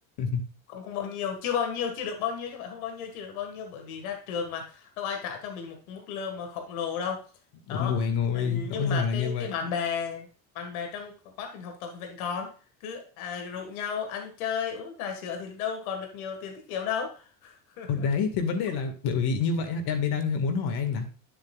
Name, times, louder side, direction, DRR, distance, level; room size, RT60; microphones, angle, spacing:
voice 1, 0.7-7.2 7.7-8.0 8.3-10.3 10.6-11.1 11.4-12.5 12.8-18.1, left 7 dB, 80° left, 4 dB, 1.8 m, -33 dB
voice 2, 7.7-9.5 17.9-21.1, left 5 dB, 60° left, 6 dB, 1.9 m, -27 dB
9.7 x 7.7 x 2.4 m, 0.37 s
hypercardioid pair, 75°, 42 cm